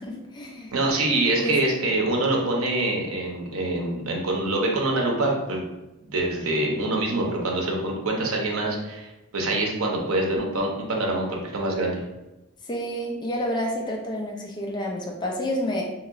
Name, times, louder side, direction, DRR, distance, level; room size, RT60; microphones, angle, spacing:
voice 1, 0.0-0.7 1.3-1.6 12.7-15.8, equal, 20° left, 0 dB, 0.4 m, -29 dB
voice 2, 0.7-5.6 6.1-12.0, right 2 dB, 70° right, 0 dB, 0.7 m, -25 dB
2.9 x 2.8 x 2.5 m, 1.0 s
head